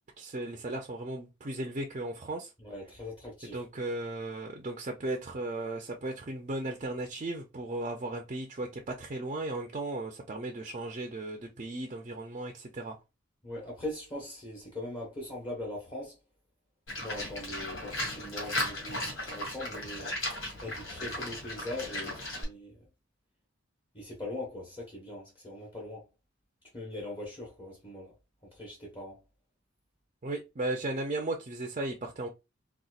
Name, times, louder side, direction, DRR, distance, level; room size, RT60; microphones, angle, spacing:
voice 1, 0.2-2.5 3.4-13.0 30.2-32.3, right 2 dB, 35° right, 0.5 m, -36 dB
voice 2, 2.6-3.6 13.4-16.2 17.0-20.1 20.6-22.8 23.9-26.1 26.7-28.2 28.4-29.2, left 1 dB, 25° left, 1.1 m, -41 dB
Livestock farm animals working animals, 16.9-22.4, left 1 dB, 85° left, 1.8 m, -36 dB
4.0 x 2.3 x 2.4 m
head